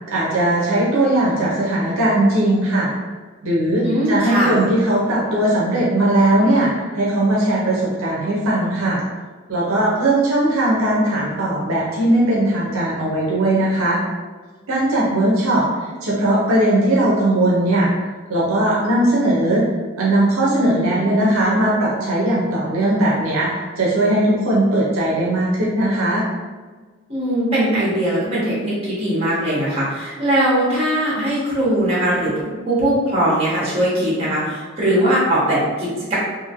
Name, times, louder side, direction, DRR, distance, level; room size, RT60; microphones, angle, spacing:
voice 1, 0.1-2.9 3.4-9.0 9.5-14.0 14.7-15.7 16.0-17.9 18.3-19.7 20.0-26.2, right 1 dB, 70° right, -5 dB, 0.6 m, -18 dB
voice 2, 3.8-4.7 20.5-21.3 27.1-32.3 32.7-36.2, right 1 dB, 30° right, -7 dB, 1.1 m, -20 dB
2.9 x 2.6 x 2.5 m, 1.3 s
head